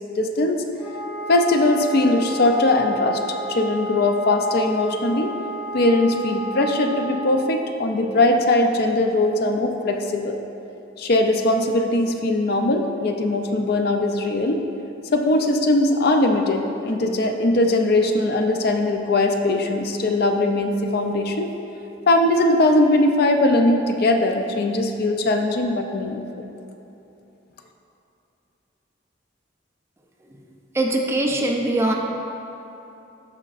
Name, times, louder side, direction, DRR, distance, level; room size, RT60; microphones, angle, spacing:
voice 1, 0.1-0.6 1.3-5.3 5.7-10.4 11.0-14.6 15.1-21.5 22.1-26.3, left 2 dB, 55° left, 4 dB, 0.5 m, -20 dB
Wind instrument woodwind instrument, 0.8-7.4, right 2 dB, 15° left, 1.0 m, -32 dB
voice 2, 30.7-31.9, right 1 dB, 15° right, 1 dB, 0.5 m, -21 dB
13.0 x 5.1 x 2.5 m, 2.9 s
head